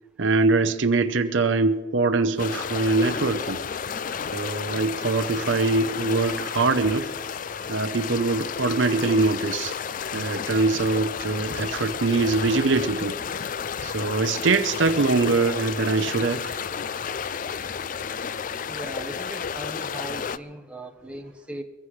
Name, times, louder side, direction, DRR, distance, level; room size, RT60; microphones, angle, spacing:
voice 1, 0.2-3.6 4.3-7.1 7.7-9.7 10.1-13.1 13.8-16.5, right 3 dB, 70° right, 11 dB, 0.7 m, -23 dB
sound 1, 2.3-18.0, left 1 dB, 75° left, 4.3 m, -51 dB
sound 2, 2.4-20.4, left 7 dB, 40° left, 0.4 m, -32 dB
voice 2, 18.7-21.6, right 1 dB, 5° right, 3 dB, 1.1 m, -38 dB
23.0 x 15.5 x 3.2 m, 1.3 s
head